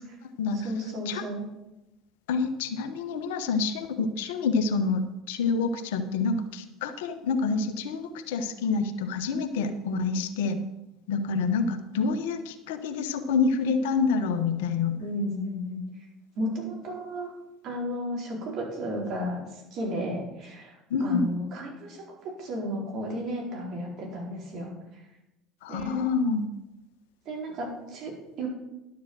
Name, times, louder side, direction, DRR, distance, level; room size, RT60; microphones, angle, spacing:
voice 1, 0.5-1.4 15.0-15.8 16.4-17.3 17.6-19.4 19.7-20.7 21.0-24.7 25.7-26.0 27.2-28.5, equal, 55° right, -1 dB, 4.4 m, -33 dB
voice 2, 2.3-10.6 11.1-15.0 20.9-21.2 25.6-26.4, left 4 dB, 75° left, 9 dB, 1.0 m, -27 dB
11.5 x 7.3 x 6.2 m, 0.93 s
hypercardioid pair, 70°, 0 cm